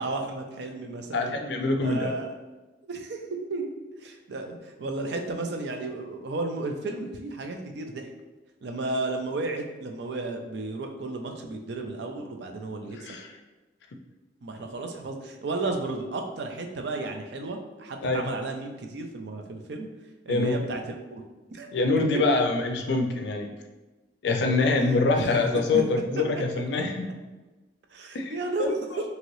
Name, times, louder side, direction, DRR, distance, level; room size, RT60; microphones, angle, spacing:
voice 1, 0.0-1.4 1.8-2.3 2.8-3.2 3.5-3.7 4.0-8.1 8.6-13.1 14.4-19.9 20.2-20.8 21.1-21.2 21.5-21.7 22.3-22.4 25.1-25.3 25.7-25.8 27.9-28.8, right 2 dB, 65° right, 4 dB, 0.4 m, -33 dB
voice 2, 1.1-2.1 12.9-13.3 18.0-18.3 20.3-20.6 21.7-23.5 24.2-27.1 28.1-28.3 28.6-29.0, left 3 dB, 65° left, 5 dB, 0.4 m, -25 dB
3.1 x 2.8 x 2.6 m, 1.2 s
head